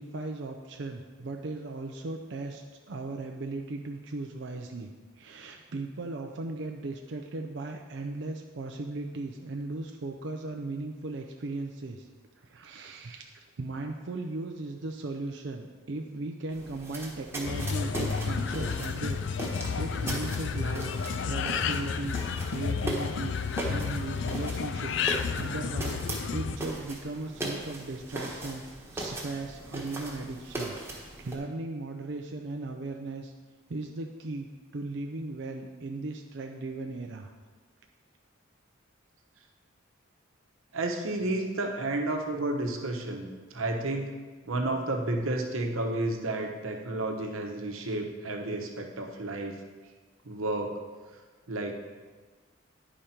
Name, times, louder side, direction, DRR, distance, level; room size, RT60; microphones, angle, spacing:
voice 1, 0.0-4.9 5.2-12.1 12.4-19.4 19.8-20.9 21.3-22.2 22.5-23.4 23.7-26.0 26.3-33.3 33.7-37.3, right 2 dB, 55° right, 3 dB, 0.5 m, -37 dB
sound 1, 16.5-31.4, right 1 dB, 10° right, 1.1 m, -39 dB
sound 2, 17.5-26.6, left 6 dB, 60° left, 0.4 m, -31 dB
voice 2, 40.7-44.1 44.5-49.6 50.2-50.8 51.5-51.8, right 2 dB, 80° right, 2 dB, 1.0 m, -31 dB
10.5 x 5.0 x 4.3 m, 1.4 s
head